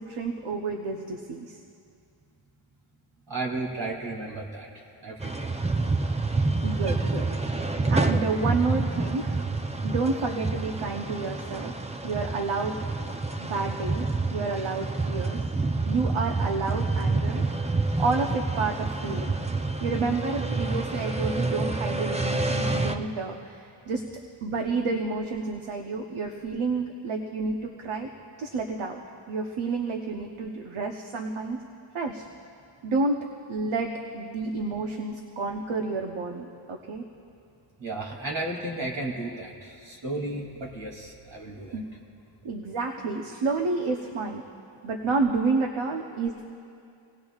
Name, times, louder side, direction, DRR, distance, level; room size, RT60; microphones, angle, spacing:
voice 1, 0.0-1.6 6.6-9.4 9.8-11.7 12.0-12.8 13.4-15.4 15.9-17.4 18.0-19.3 19.8-24.0 24.4-28.1 28.4-29.0 29.3-31.6 31.9-32.2 32.8-33.2 33.5-37.0 41.7-41.9 42.4-44.4 44.8-46.4, right 3 dB, 75° right, 3 dB, 1.0 m, -30 dB
voice 2, 3.3-5.5 37.8-41.8, right 2 dB, 60° right, -2 dB, 2.9 m, -34 dB
sound 1, 5.2-23.0, right 3 dB, 15° right, 0.6 m, -28 dB
26.0 x 18.5 x 2.4 m, 2.5 s
wide cardioid pair, 110°, 49 cm